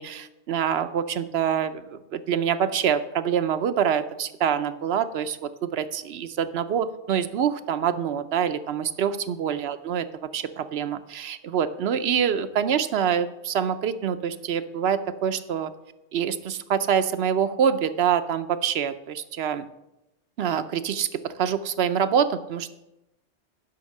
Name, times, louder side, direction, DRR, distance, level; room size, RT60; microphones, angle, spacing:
voice 1, 0.0-10.0 10.3-15.7 16.1-19.6 20.4-21.1 21.4-22.7, right 8 dB, 65° right, 12 dB, 0.9 m, -25 dB
11.5 x 5.7 x 6.5 m, 0.93 s
omnidirectional pair, 1.2 m